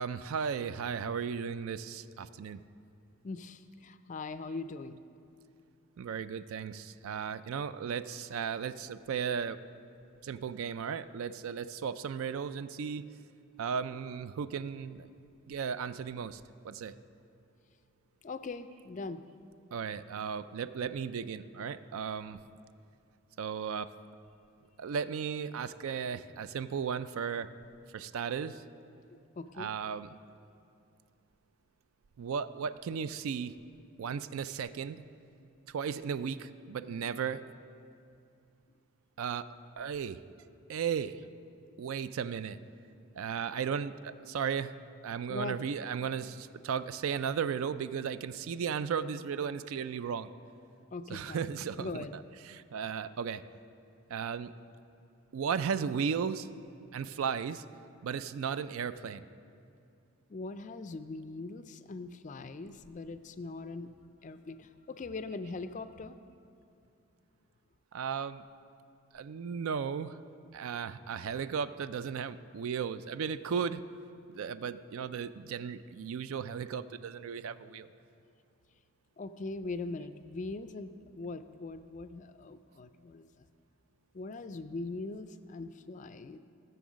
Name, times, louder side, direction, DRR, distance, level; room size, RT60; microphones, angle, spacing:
voice 1, 0.0-2.6 6.0-9.6 10.2-13.0 13.6-15.1 15.5-16.9 19.7-22.4 23.4-23.9 24.8-27.5 27.9-28.6 29.5-30.2 32.2-33.5 34.0-35.0 35.7-37.4 39.2-39.5 39.8-40.2 40.7-41.2 41.8-42.6 43.1-44.7 45.0-50.3 51.1-53.4 54.1-54.5 55.3-56.5 56.9-57.6 58.0-59.2 67.9-68.4 69.1-70.2 70.5-73.8 74.3-77.9, right 7 dB, 75° right, 14 dB, 0.4 m, -35 dB
voice 2, 3.2-5.0 18.2-19.2 29.4-29.7 45.3-45.6 50.9-51.5 51.8-52.1 60.3-63.9 64.2-66.2 79.2-80.9 81.1-83.3 84.1-86.4, left 3 dB, 35° left, 11 dB, 0.3 m, -41 dB
14.0 x 6.9 x 6.2 m, 2.5 s
head